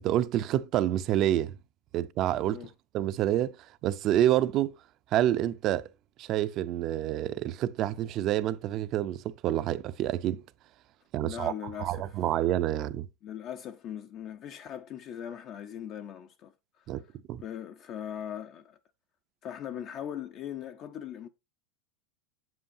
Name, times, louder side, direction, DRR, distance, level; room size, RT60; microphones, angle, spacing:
voice 1, 0.0-1.5 1.9-2.6 2.9-3.5 3.8-4.7 5.1-5.9 6.2-10.4 11.1-11.5 11.8-13.1 16.9-17.0 17.3-17.4, right 12 dB, 35° right, 0.6 m, -28 dB
voice 2, 11.2-12.3 13.2-18.8 19.4-21.3, left 9 dB, 35° left, 0.6 m, -40 dB
8.0 x 7.8 x 2.6 m
supercardioid pair, 155°, 0 cm